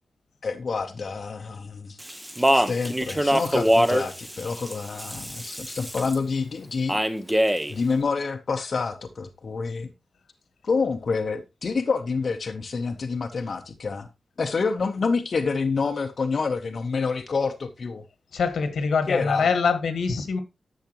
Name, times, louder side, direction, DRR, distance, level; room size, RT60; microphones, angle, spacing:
voice 1, 0.4-2.0 2.5-7.0 7.3-7.4 7.7-9.9 10.6-14.1 14.4-18.0 19.1-19.5, left 4 dB, 45° left, 0.7 m, -27 dB
Speech, 2.0-6.2 6.9-7.7, equal, 5° right, 0.7 m, -24 dB
voice 2, 18.3-20.4, left 5 dB, 85° left, 1.5 m, -24 dB
10.5 x 7.2 x 3.0 m
wide cardioid pair, 175°, 0 cm